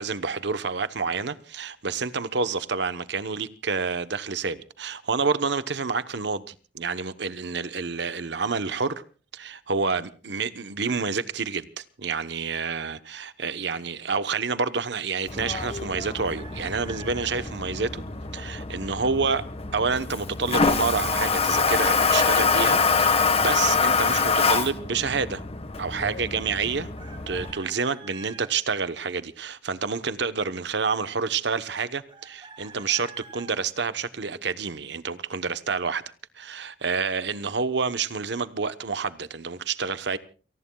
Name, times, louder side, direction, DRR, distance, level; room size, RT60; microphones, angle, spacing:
voice 1, 0.0-9.0 9.3-18.0 18.3-19.4 19.7-25.4 25.8-26.9 27.3-36.0 36.3-40.2, right 5 dB, 70° right, 1.0 m, -28 dB
Toilet flush, 15.3-27.5, left 4 dB, 35° left, 1.4 m, -25 dB
Chicken rooster, 16.0-17.5 20.9-22.4 27.0-28.5 32.1-33.6, right 4 dB, 30° right, 5.8 m, -46 dB
29.5 x 19.0 x 2.3 m
head